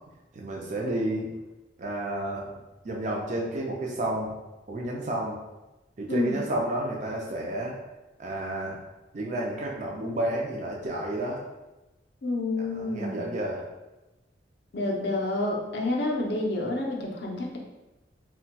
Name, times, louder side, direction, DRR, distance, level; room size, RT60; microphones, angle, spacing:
voice 1, 0.3-1.3 1.8-2.5 2.8-4.3 4.7-5.4 6.0-7.7 8.2-8.8 9.1-11.4 12.7-13.6, right 1 dB, 40° right, -2 dB, 0.4 m, -31 dB
voice 2, 6.1-6.4 12.2-13.3 14.7-17.6, left 2 dB, 60° left, 0 dB, 0.5 m, -29 dB
4.0 x 2.2 x 2.2 m, 1.0 s
head